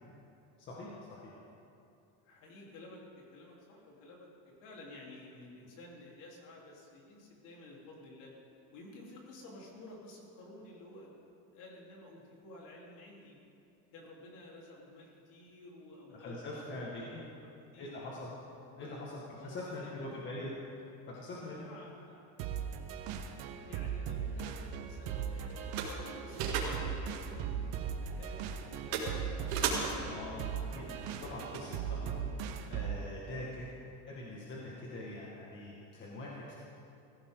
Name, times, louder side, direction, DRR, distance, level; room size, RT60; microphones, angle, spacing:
voice 1, 0.6-1.4 16.1-17.2 17.8-18.3 18.8-20.5 21.1-21.6 30.1-33.7 34.1-36.6, left 2 dB, 30° left, -4 dB, 1.9 m, -43 dB
voice 2, 2.2-8.3 8.7-11.1 11.5-13.4 13.9-18.2 18.7-19.0 19.4-20.2 21.4-22.3 23.6-25.7 26.2-30.8 33.1-33.4, left 2 dB, 55° left, -3 dB, 3.9 m, -53 dB
sound 1, 22.4-33.1, right 8 dB, 60° right, 1.3 m, -38 dB
sound 2, 24.1-32.1, right 5 dB, 80° right, 4.0 m, -40 dB
20.0 x 16.0 x 3.9 m, 2.7 s
cardioid pair, 170°, 38 cm